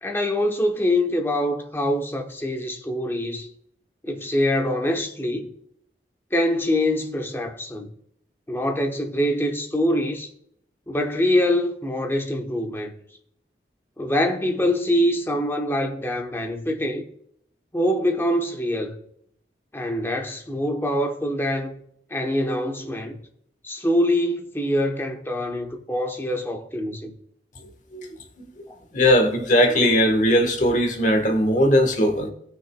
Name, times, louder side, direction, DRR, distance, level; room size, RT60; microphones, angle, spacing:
voice 1, 0.0-3.5 4.0-5.5 6.3-7.9 8.5-10.3 10.9-12.9 14.0-17.1 17.7-19.0 19.7-21.8 22.1-23.2 23.6-27.1, left 1 dB, 15° left, 0.8 m, -24 dB
voice 2, 28.9-32.3, equal, 45° left, 1.2 m, -19 dB
18.0 x 6.1 x 2.2 m
head